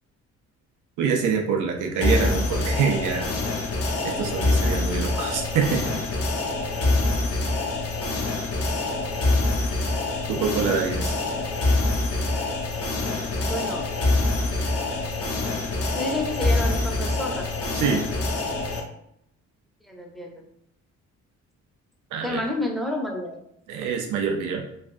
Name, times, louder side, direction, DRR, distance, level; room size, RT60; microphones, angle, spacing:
voice 1, 1.0-3.3 4.0-6.0 10.3-11.2 17.7-18.1 22.1-22.4 23.7-24.6, right 6 dB, 85° right, 1 dB, 0.6 m, -25 dB
sound 1, 2.0-18.8, left 2 dB, 50° left, 0.6 m, -25 dB
voice 2, 13.4-13.8 16.0-17.5 19.9-20.4 22.2-23.4, left 1 dB, ahead, 0 dB, 0.6 m, -30 dB
3.2 x 2.4 x 2.5 m, 0.74 s
cardioid pair, 90°, 30 cm